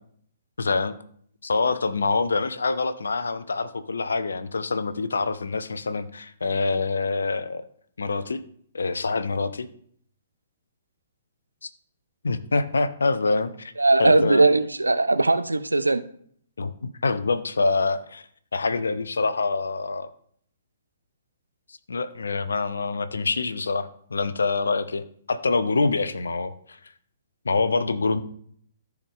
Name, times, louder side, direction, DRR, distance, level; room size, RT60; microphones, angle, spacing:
voice 1, 0.6-1.0 1.4-7.6 8.0-8.4 8.7-9.7 11.6-11.7 12.2-13.7 14.0-14.4 16.6-18.2 18.5-20.1 21.9-26.8 27.4-28.2, left 3 dB, 75° left, 0.7 m, -25 dB
voice 2, 13.8-16.0, right 2 dB, 85° right, 0.6 m, -19 dB
14.0 x 4.7 x 3.7 m
figure-of-eight pair, 125°, 0 cm